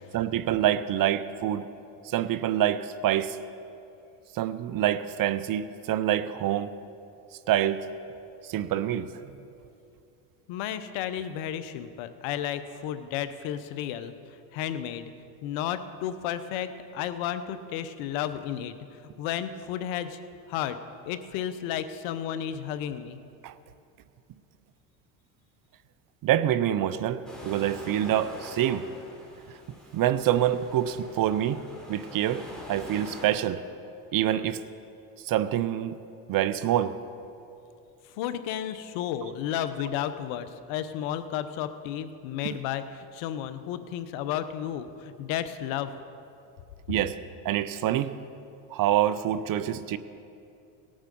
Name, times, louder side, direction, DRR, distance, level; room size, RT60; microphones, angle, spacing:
voice 1, 0.1-1.7 2.0-3.4 4.3-6.7 7.5-7.9 8.4-9.3 23.4-23.5 26.2-28.8 29.9-31.6 31.9-33.6 34.1-34.6 35.2-36.0 36.3-36.9 39.2-39.3 42.4-42.6 46.9-47.2 47.4-48.1 48.7-50.0, right 11 dB, 45° right, 15 dB, 0.6 m, -26 dB
voice 2, 10.5-14.1 14.5-15.1 15.4-18.7 19.2-20.2 20.5-20.8 21.0-23.2 38.2-45.9, left 10 dB, 70° left, 12 dB, 1.0 m, -32 dB
sound 1, 27.3-33.3, left 1 dB, ahead, 4.0 m, -44 dB
18.0 x 9.0 x 5.3 m, 2.6 s
supercardioid pair, 90°, 49 cm